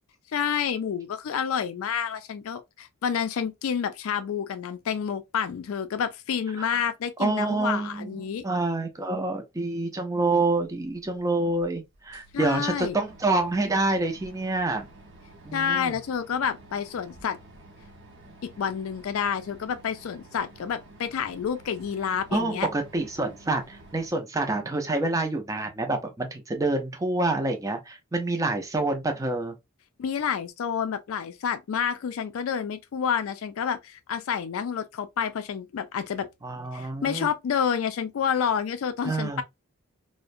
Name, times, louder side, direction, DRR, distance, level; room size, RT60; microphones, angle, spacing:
voice 1, 0.3-8.4 12.3-13.0 15.5-17.4 18.4-22.7 30.0-36.3 36.7-39.4, left 7 dB, 80° left, 0.4 m, -29 dB
voice 2, 7.2-8.1 8.4-14.9 15.5-15.9 22.3-29.6 36.4-37.3 39.0-39.4, right 2 dB, 15° right, 0.4 m, -27 dB
sound 1, 10.9-11.0 11.6-11.7 11.9-24.1, right 1 dB, 60° right, 0.7 m, -50 dB
2.4 x 2.1 x 2.5 m
head